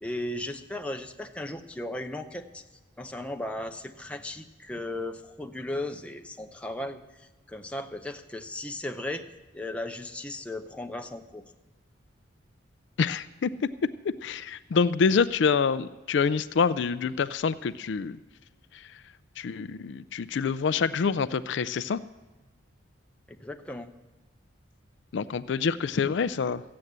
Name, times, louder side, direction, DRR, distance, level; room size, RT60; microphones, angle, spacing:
voice 1, 0.0-2.6 3.0-11.4 23.3-23.9, left 1 dB, 5° left, 5 dB, 0.6 m, -36 dB
voice 2, 13.0-13.5 14.2-18.2 18.7-19.0 19.4-22.0 25.1-26.6, left 5 dB, 65° left, 15 dB, 0.4 m, -26 dB
14.5 x 8.6 x 7.9 m, 1.2 s
head